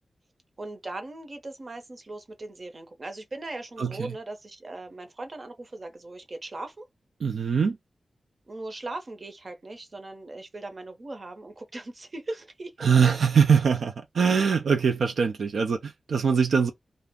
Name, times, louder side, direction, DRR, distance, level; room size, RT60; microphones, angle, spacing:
voice 1, 0.6-6.9 8.5-12.9, right 2 dB, 45° right, 0.7 m, -39 dB
voice 2, 3.8-4.1 7.2-7.8 12.8-16.7, right 6 dB, 85° right, 0.3 m, -22 dB
2.4 x 2.0 x 3.4 m
wide cardioid pair, 85°, 0 cm